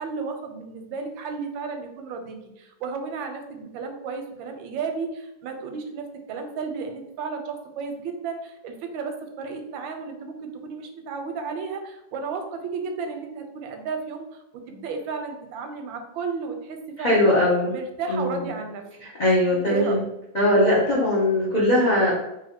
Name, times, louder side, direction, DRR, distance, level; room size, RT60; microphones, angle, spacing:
voice 1, 0.0-17.2 17.7-18.8 19.5-20.1, right 4 dB, 90° right, 5 dB, 1.4 m, -33 dB
voice 2, 17.0-17.7 18.1-18.5 19.0-20.0 20.3-22.1, left 1 dB, 70° left, -6 dB, 0.4 m, -20 dB
3.1 x 2.7 x 4.2 m, 0.86 s
omnidirectional pair, 2.0 m